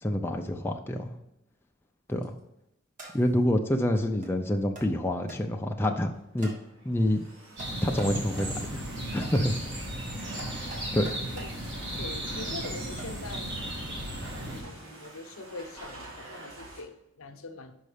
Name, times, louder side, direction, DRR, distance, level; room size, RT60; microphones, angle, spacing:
voice 1, 0.0-1.1 2.1-2.3 3.1-6.5 6.8-7.2 7.8-8.8 9.1-9.6 10.2-10.3 10.9-11.2, left 1 dB, 10° left, 2 dB, 0.4 m, -27 dB
sound 1, 2.1-2.4 3.0-3.4 4.2-4.3 4.8-4.9 5.3-5.4 6.4-6.6 7.6-8.1 8.4-8.5 9.2-9.4 10.4-11.5 12.6-13.4 14.3-14.4 15.0-15.2, right 2 dB, 40° right, 1.5 m, -45 dB
Domestic sounds home sounds, 6.1-16.8, right 2 dB, 85° right, 2.1 m, -48 dB
sound 2, 7.6-14.6, right 1 dB, 60° right, 1.8 m, -35 dB
voice 2, 11.9-13.5 14.4-17.7, left 3 dB, 75° left, 6 dB, 0.8 m, -43 dB
5.6 x 5.3 x 4.9 m, 0.85 s
head